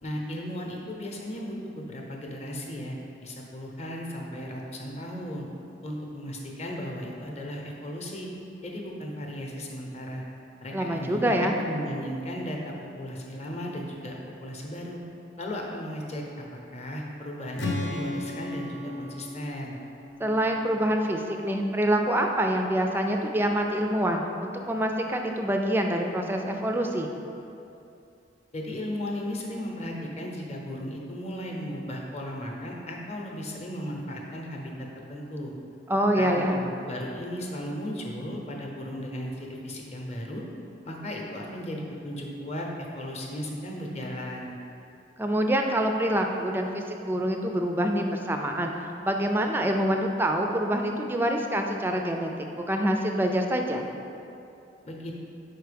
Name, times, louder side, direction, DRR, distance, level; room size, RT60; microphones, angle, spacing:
voice 1, 0.0-3.0 3.2-5.5 5.8-8.3 8.6-10.2 10.6-15.0 15.4-19.8 28.5-35.5 36.2-40.4 40.8-42.7 42.9-44.6 54.8-55.1, equal, 35° left, -1 dB, 0.7 m, -36 dB
voice 2, 10.7-11.5 20.2-27.1 35.9-36.6 45.2-53.9, right 1 dB, 10° right, 3 dB, 0.3 m, -26 dB
Strum, 17.6-21.7, left 1 dB, 75° left, 0.8 m, -35 dB
4.9 x 4.5 x 5.1 m, 2.7 s
head